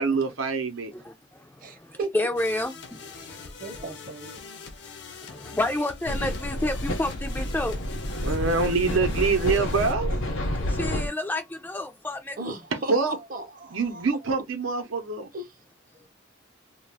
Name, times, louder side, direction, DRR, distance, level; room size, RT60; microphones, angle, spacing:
voice 1, 0.0-0.9 8.2-10.1 12.7-13.1 13.7-15.3, right 4 dB, 90° right, 0.7 m, -25 dB
voice 2, 0.9-3.0 3.4-3.5 5.3-7.8 10.6-12.4, left 2 dB, 10° left, 0.3 m, -30 dB
voice 3, 1.6-2.1 3.2-4.4 5.5-5.6 9.5-9.7 10.1-10.2 10.7-10.8 12.4-14.1 15.3-15.5, right 2 dB, 45° right, 0.6 m, -36 dB
sound 1, 2.4-9.9, left 5 dB, 55° left, 0.6 m, -43 dB
sound 2, 6.1-11.1, left 1 dB, 85° left, 0.8 m, -29 dB
2.4 x 2.3 x 3.3 m
head